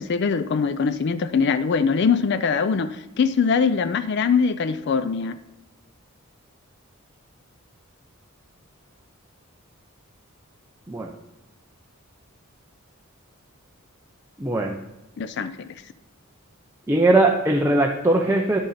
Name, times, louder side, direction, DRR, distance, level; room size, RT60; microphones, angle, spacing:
voice 1, 0.0-5.4 15.2-15.7, left 5 dB, 50° left, 14 dB, 0.4 m, -22 dB
voice 2, 14.4-14.8 16.9-18.6, right 2 dB, 10° right, 0 dB, 0.5 m, -20 dB
10.5 x 6.5 x 4.2 m, 1.0 s
head